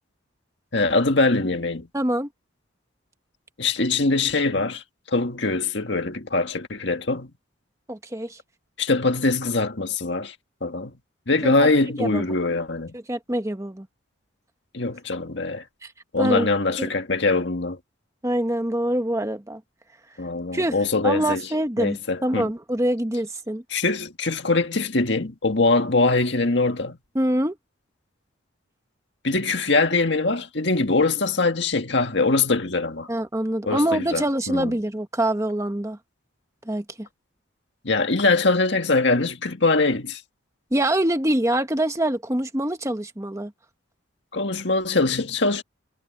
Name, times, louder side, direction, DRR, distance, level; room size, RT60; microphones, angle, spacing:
voice 1, 0.7-1.9 3.6-4.8 5.1-7.3 8.8-10.4 10.6-10.9 11.3-12.9 14.7-15.6 16.1-17.8 20.2-21.5 21.8-22.5 23.7-27.0 29.2-33.1 33.7-34.8 37.8-40.2 44.3-45.6, left 3 dB, 60° left, 1.9 m, -22 dB
voice 2, 1.9-2.3 7.9-8.4 11.4-11.7 12.0-12.2 13.1-13.9 15.8-15.9 16.2-16.5 16.8-16.9 18.2-19.6 20.5-20.7 21.0-23.6 27.1-27.6 33.1-36.0 36.7-37.1 40.7-43.5, right 1 dB, 15° right, 1.1 m, -25 dB
head